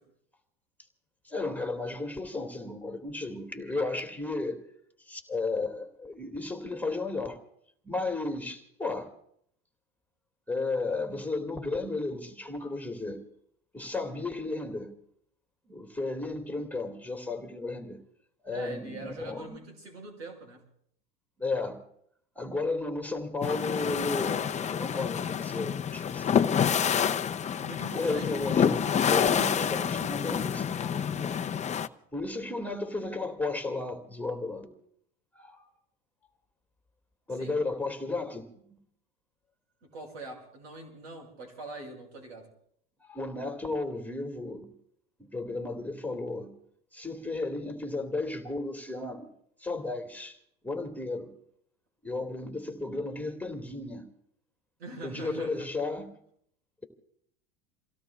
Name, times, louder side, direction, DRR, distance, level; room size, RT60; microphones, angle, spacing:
voice 1, 1.2-4.6 5.1-7.4 7.8-9.1 10.5-13.2 13.7-14.9 15.7-18.0 18.4-19.6 21.4-21.8 22.4-26.5 27.9-31.3 32.1-34.8 35.3-35.7 37.3-38.5 43.0-44.7 45.2-46.5 46.9-49.3 49.6-50.4 50.6-51.3 52.0-54.1 55.0-56.1, left 3 dB, 5° left, 2.3 m, -34 dB
voice 2, 18.5-20.6 27.6-28.4 37.3-37.6 39.8-42.5 54.8-55.7, right 2 dB, 85° right, 6.3 m, -43 dB
sound 1, 23.4-31.9, left 8 dB, 20° left, 0.7 m, -28 dB
29.0 x 17.0 x 2.4 m
supercardioid pair, 95°, 31 cm